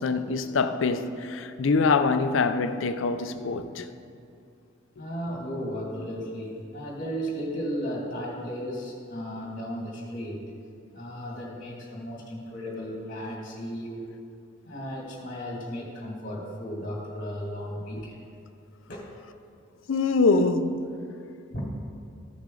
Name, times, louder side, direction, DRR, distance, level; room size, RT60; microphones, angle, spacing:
voice 1, 0.0-3.9 19.9-21.0, left 4 dB, 75° left, 0.5 m, -24 dB
voice 2, 5.0-10.5 10.9-14.1 14.6-18.2 18.9-19.1 20.2-20.4 21.5-21.7, equal, 45° left, 2.2 m, -35 dB
14.0 x 6.3 x 3.8 m
head